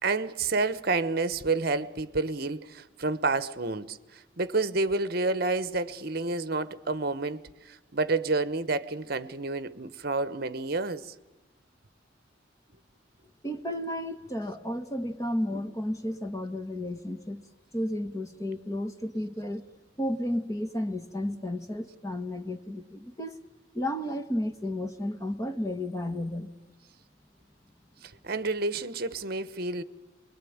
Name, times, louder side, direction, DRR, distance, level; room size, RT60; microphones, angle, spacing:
voice 1, 0.0-11.1 28.0-29.8, right 3 dB, 50° right, 1.0 m, -29 dB
voice 2, 13.4-17.4 17.7-19.6 20.0-23.4 23.7-26.5, left 1 dB, 15° left, 1.5 m, -32 dB
26.0 x 21.5 x 9.5 m
head